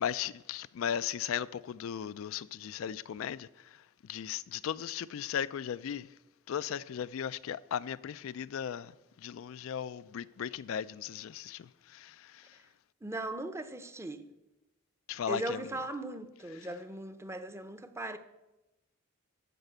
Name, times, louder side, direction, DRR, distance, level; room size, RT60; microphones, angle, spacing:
voice 1, 0.0-3.5 4.1-6.1 6.5-8.9 9.2-12.4 15.1-15.6, left 8 dB, 70° left, 0.3 m, -36 dB
voice 2, 13.0-14.3 15.3-18.2, right 1 dB, 15° right, 0.6 m, -38 dB
12.0 x 4.9 x 7.9 m
head